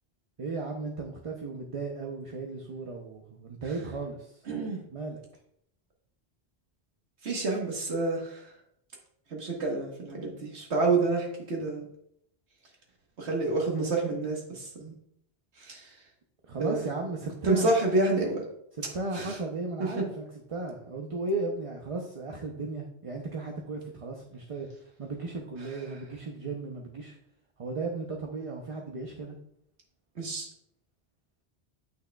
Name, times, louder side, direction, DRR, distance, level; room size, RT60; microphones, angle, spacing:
voice 1, 0.4-4.4 4.9-5.2 16.4-17.7 18.7-24.7 25.0-27.2 27.6-29.4, right 3 dB, 40° right, 0 dB, 0.6 m, -35 dB
voice 2, 4.5-4.8 7.2-8.4 9.3-11.8 13.2-14.9 15.6-15.9 16.6-16.8 17.4-18.5 19.1-19.3 20.0-20.1 30.2-30.5, right 2 dB, 75° right, -1 dB, 1.6 m, -28 dB
8.4 x 6.3 x 2.3 m, 0.72 s
omnidirectional pair, 1.1 m